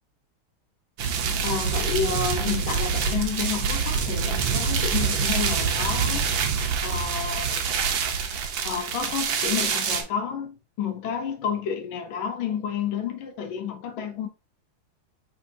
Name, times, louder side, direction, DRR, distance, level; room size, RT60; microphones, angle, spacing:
sound 1, 1.0-10.0, right 6 dB, 75° right, 1.5 m, -26 dB
voice 1, 1.4-6.4 6.8-7.6 8.6-14.3, left 7 dB, 75° left, 1.3 m, -30 dB
5.1 x 3.6 x 2.6 m
omnidirectional pair, 2.3 m